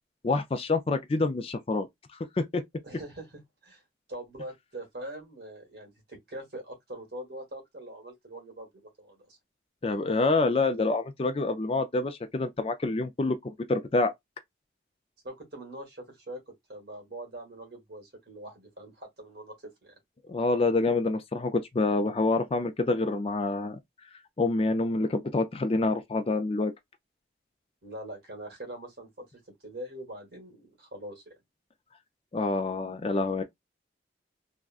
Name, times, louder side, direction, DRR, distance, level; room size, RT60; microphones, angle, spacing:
voice 1, 0.2-1.9 2.4-2.6 9.8-14.1 20.3-23.8 24.4-26.7 32.3-33.4, left 3 dB, 30° left, 0.4 m, -27 dB
voice 2, 2.8-3.8 4.1-9.4 15.2-19.5 19.8-19.9 27.8-31.3, right 1 dB, 60° right, 1.7 m, -43 dB
3.5 x 2.2 x 2.4 m
head